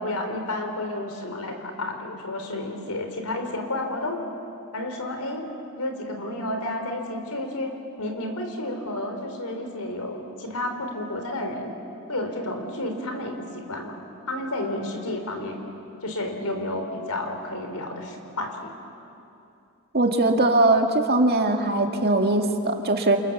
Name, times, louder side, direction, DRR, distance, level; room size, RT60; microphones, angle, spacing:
voice 1, 0.0-4.2 4.7-5.4 5.8-11.7 12.1-14.0 14.3-15.6 16.0-18.7, left 1 dB, 90° left, 4 dB, 4.0 m, -31 dB
voice 2, 19.9-23.2, right 2 dB, 45° right, 3 dB, 2.1 m, -21 dB
29.0 x 28.0 x 7.3 m, 2.7 s
head